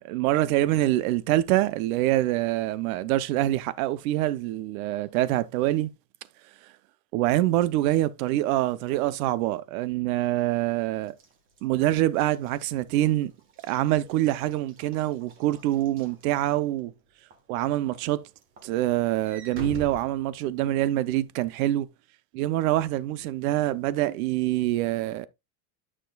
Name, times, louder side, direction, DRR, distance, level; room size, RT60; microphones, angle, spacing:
voice 1, 0.1-5.9 7.1-11.1 11.6-13.3 13.6-16.9 17.5-18.3 18.6-21.9 22.3-25.3, right 14 dB, 70° right, 0.8 m, -25 dB
Walk footsteps / Slam, 11.1-16.8 17.3-17.6 17.9-20.9, right 1 dB, 25° right, 1.4 m, -44 dB
9.3 x 6.1 x 2.3 m
supercardioid pair, 165°, 44 cm